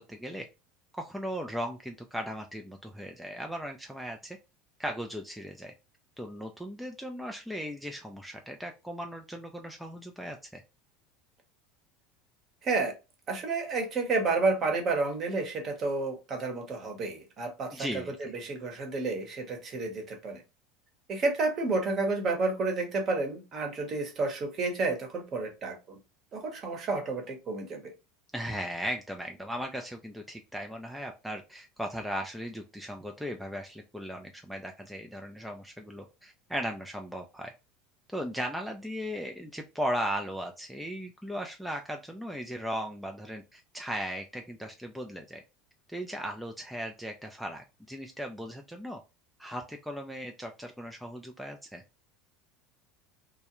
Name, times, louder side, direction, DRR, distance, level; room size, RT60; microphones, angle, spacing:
voice 1, 0.1-0.5 0.9-4.4 4.8-5.7 6.2-10.6 17.7-18.3 28.3-37.5 38.1-45.4 45.9-49.0 49.4-51.8, equal, ahead, 0.4 m, -37 dB
voice 2, 12.6-12.9 13.3-20.4 21.1-26.0 26.3-27.9, right 3 dB, 40° right, 0.9 m, -30 dB
2.2 x 2.1 x 2.9 m
hypercardioid pair, 80°, 0 cm